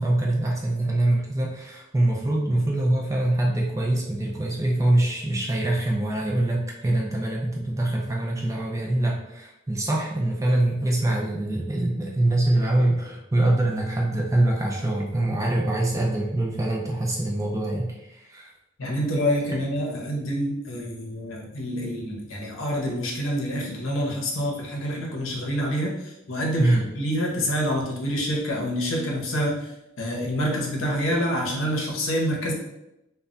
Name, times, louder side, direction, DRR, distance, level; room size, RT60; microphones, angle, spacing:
voice 1, 0.0-18.5 26.6-26.8, right 1 dB, 15° right, -2 dB, 0.4 m, -24 dB
voice 2, 18.8-29.7 30.0-32.5, equal, 75° left, -1 dB, 0.7 m, -27 dB
2.2 x 2.1 x 3.7 m, 0.89 s
head